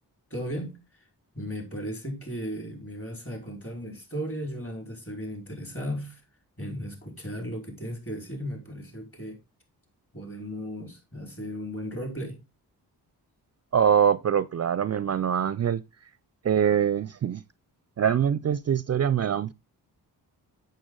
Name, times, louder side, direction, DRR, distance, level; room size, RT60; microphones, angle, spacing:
voice 1, 0.3-0.8 1.3-6.2 6.6-9.4 10.1-12.4, equal, 35° left, 4.9 m, -36 dB
voice 2, 13.7-15.8 16.4-17.4 18.0-19.5, right 8 dB, 40° right, 0.5 m, -23 dB
7.8 x 6.6 x 3.9 m
cardioid pair, 50°, 40 cm